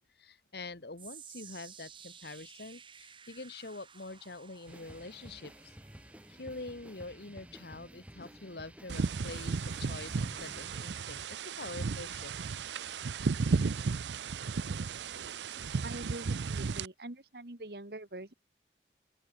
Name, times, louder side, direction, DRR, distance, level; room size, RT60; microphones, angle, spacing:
voice 1, 0.2-5.8 6.3-12.3, left 3 dB, 65° left, 1.5 m, -45 dB
sound 1, 1.0-13.3 13.6-14.0 14.6-14.7, right 7 dB, 30° right, 4.5 m, -56 dB
sound 2, 4.7-10.7, equal, 5° right, 2.5 m, -52 dB
sound 3, 8.9-16.9, right 4 dB, 85° right, 0.5 m, -34 dB
voice 2, 15.8-18.3, right 2 dB, 65° right, 1.8 m, -44 dB
open air
head